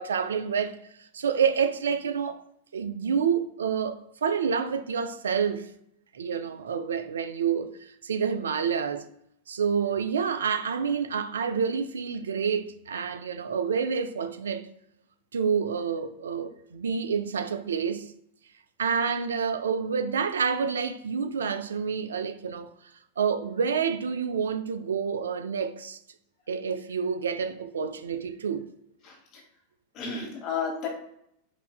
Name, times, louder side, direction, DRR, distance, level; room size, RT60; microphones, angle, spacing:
voice 1, 0.0-2.4 2.7-5.7 6.1-9.1 9.5-14.7 15.3-18.1 18.8-22.7 23.2-26.0 26.5-28.7, right 6 dB, 65° right, 0.4 m, -28 dB
voice 2, 29.0-29.4 29.9-30.9, left 5 dB, 35° left, 1.2 m, -32 dB
5.6 x 2.6 x 2.2 m
figure-of-eight pair, 90°, 0 cm